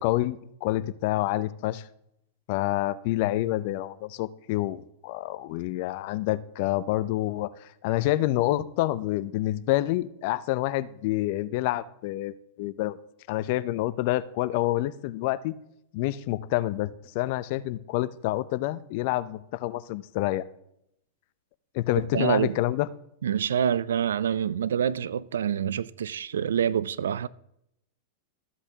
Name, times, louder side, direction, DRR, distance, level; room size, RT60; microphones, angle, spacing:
voice 1, 0.0-1.8 2.5-13.0 13.3-15.5 15.9-20.4 21.7-22.9, left 16 dB, 55° left, 0.5 m, -28 dB
voice 2, 22.1-22.6 23.2-27.3, right 8 dB, 80° right, 0.4 m, -26 dB
14.0 x 8.0 x 2.8 m
hypercardioid pair, 105°, 0 cm